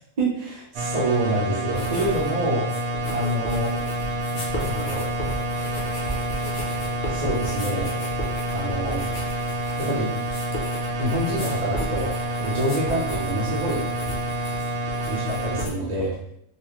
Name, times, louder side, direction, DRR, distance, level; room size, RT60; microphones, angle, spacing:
voice 1, 0.2-3.8 4.7-5.1 7.1-7.9 8.5-9.0 9.8-10.1 11.0-12.1 12.4-13.9 15.0-16.2, right 1 dB, 45° right, -5 dB, 0.6 m, -27 dB
sound 1, 0.7-15.6, equal, 90° right, 1.0 m, -28 dB
sound 2, 1.7-2.3 2.6-15.7, equal, 55° left, 0.9 m, -35 dB
3.4 x 2.4 x 3.0 m, 0.71 s
omnidirectional pair, 1.4 m